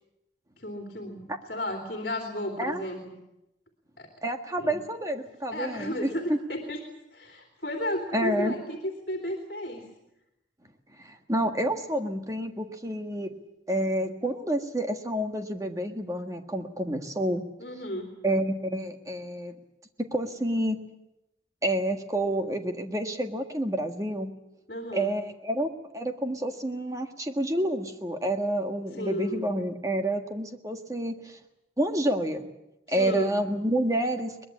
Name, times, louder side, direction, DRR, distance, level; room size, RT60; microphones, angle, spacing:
voice 1, 0.6-3.0 4.0-4.1 4.6-4.8 5.5-6.8 7.1-9.8 17.6-18.1 24.7-25.1 28.9-29.4 32.9-33.4, left 1 dB, 50° left, 3 dB, 3.4 m, -33 dB
voice 2, 4.2-6.4 8.1-8.5 11.0-13.3 13.7-17.5 18.2-19.5 20.0-20.8 21.6-24.3 24.9-31.4 31.8-32.5 32.9-34.4, right 1 dB, 20° right, 5 dB, 1.6 m, -29 dB
22.5 x 21.0 x 8.6 m, 0.91 s
head